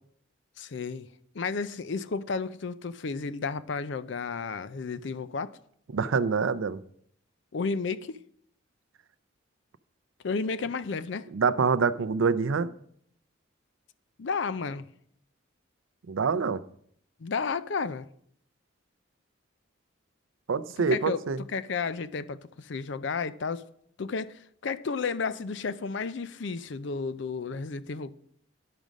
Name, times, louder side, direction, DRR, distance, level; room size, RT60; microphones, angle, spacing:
voice 1, 0.6-1.1 1.3-5.6 7.5-8.2 10.2-11.3 14.2-14.8 17.2-18.1 20.8-21.2 21.5-23.6 24.0-28.1, left 4 dB, 60° left, 0.5 m, -32 dB
voice 2, 5.9-6.8 11.3-12.7 16.1-16.6 20.5-21.4, right 5 dB, 75° right, 0.5 m, -26 dB
10.5 x 5.2 x 6.3 m
head